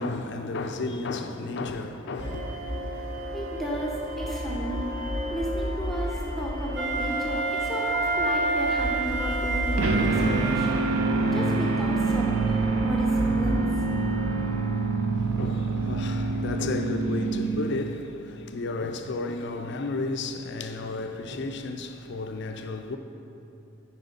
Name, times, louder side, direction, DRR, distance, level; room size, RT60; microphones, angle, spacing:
voice 1, 0.0-2.5 15.2-23.0, left 3 dB, 55° left, 0.5 m, -33 dB
sound 1, 2.2-17.4, equal, 40° right, 1.0 m, -33 dB
voice 2, 3.3-4.9 5.3-10.9 11.3-13.7, equal, ahead, 0.8 m, -34 dB
Wind instrument woodwind instrument, 6.7-11.0, right 3 dB, 55° right, 1.2 m, -28 dB
sound 2, 9.8-18.0, right 3 dB, 80° right, 0.5 m, -26 dB
9.5 x 4.8 x 5.1 m
head